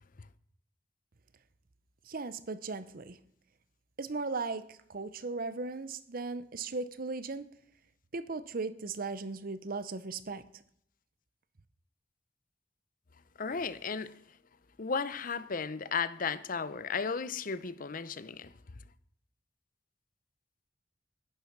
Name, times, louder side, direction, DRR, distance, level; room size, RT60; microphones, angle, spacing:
voice 1, 2.1-3.2 4.0-7.5 8.1-10.4, right 3 dB, 50° right, 0.8 m, -37 dB
voice 2, 13.4-14.1 14.8-18.5, left 5 dB, 50° left, 0.7 m, -34 dB
11.5 x 10.5 x 5.9 m
head